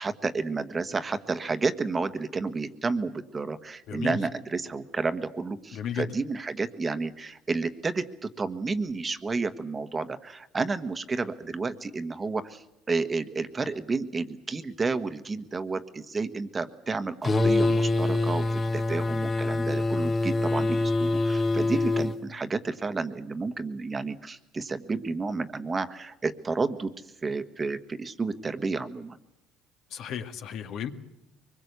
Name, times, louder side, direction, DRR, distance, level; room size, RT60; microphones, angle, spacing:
voice 1, 0.0-26.9 27.2-29.2, right 4 dB, 20° right, 10 dB, 1.3 m, -31 dB
voice 2, 3.9-4.2 5.7-6.1 29.9-30.9, left 8 dB, 60° left, 6 dB, 1.9 m, -33 dB
sound 1, 17.2-22.2, left 2 dB, 25° left, 1.3 m, -25 dB
23.5 x 21.5 x 8.2 m, 0.87 s
cardioid pair, 115°, 0 cm